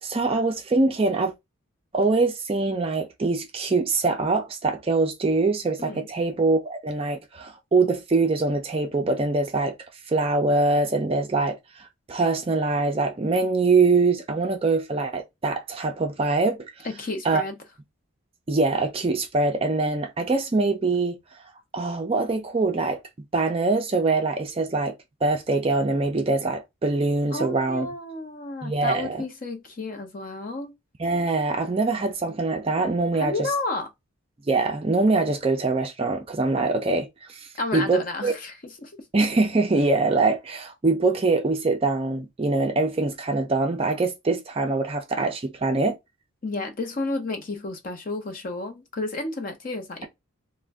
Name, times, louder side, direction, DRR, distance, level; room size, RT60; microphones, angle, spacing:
voice 1, 0.0-1.3 1.9-9.7 10.1-16.9 17.2-17.4 18.5-21.2 21.7-23.0 23.3-24.9 25.2-27.9 28.6-29.2 31.0-33.3 34.5-38.3 39.1-46.0, right 3 dB, 25° right, 0.4 m, -23 dB
voice 2, 16.8-17.6 27.3-30.7 33.1-33.9 37.6-38.9 46.4-50.1, left 2 dB, 40° left, 0.6 m, -31 dB
2.5 x 2.1 x 3.3 m
head